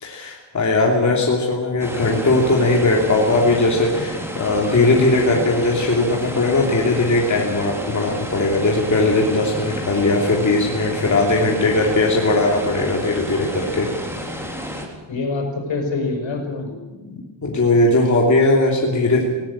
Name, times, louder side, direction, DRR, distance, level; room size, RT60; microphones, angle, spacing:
voice 1, 0.0-13.9 17.4-19.2, left 2 dB, 40° left, -1 dB, 3.1 m, -18 dB
sound 1, 1.8-14.9, equal, 5° right, 3.2 m, -31 dB
voice 2, 15.1-17.1, left 3 dB, 75° left, 3 dB, 6.2 m, -26 dB
19.0 x 19.0 x 8.7 m, 1.2 s
wide cardioid pair, 170°, 45 cm